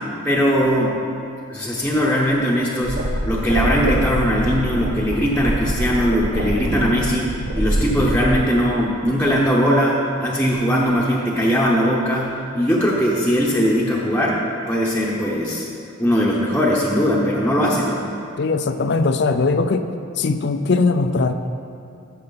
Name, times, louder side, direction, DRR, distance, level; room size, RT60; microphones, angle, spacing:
voice 1, 0.2-1.0 1.5-3.0 3.2-14.4 14.7-15.7 16.0-18.0, equal, 5° left, -5 dB, 0.8 m, -20 dB
sound 1, 2.8-8.4, right 1 dB, 70° right, 0.9 m, -24 dB
voice 2, 18.4-19.9 20.2-21.3, left 3 dB, 55° left, 9 dB, 0.4 m, -19 dB
14.0 x 6.7 x 4.1 m, 2.6 s
head